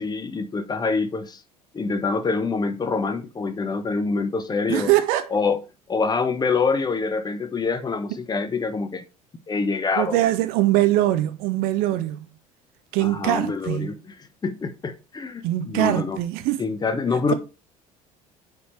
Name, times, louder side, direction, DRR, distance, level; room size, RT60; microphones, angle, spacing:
voice 1, 0.0-1.4 1.7-4.9 5.3-5.6 5.9-9.0 9.5-10.2 13.0-14.2 14.4-16.2 16.6-17.3, left 4 dB, 20° left, 1.0 m, -25 dB
voice 2, 4.7-5.3 10.0-12.2 12.9-13.9 15.4-16.6, right 14 dB, 50° right, 0.8 m, -22 dB
9.5 x 4.3 x 3.3 m
figure-of-eight pair, 60°, 19 cm